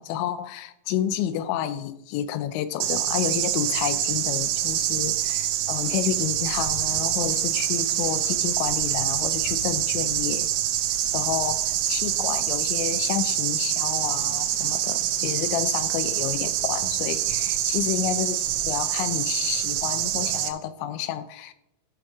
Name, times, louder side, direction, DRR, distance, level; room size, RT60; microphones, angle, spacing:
voice 1, 0.0-10.5 11.1-21.5, left 10 dB, 80° left, 2.9 m, -30 dB
sound 1, 2.8-20.5, right 12 dB, 85° right, 3.2 m, -26 dB
13.0 x 6.4 x 4.8 m
omnidirectional pair, 5.4 m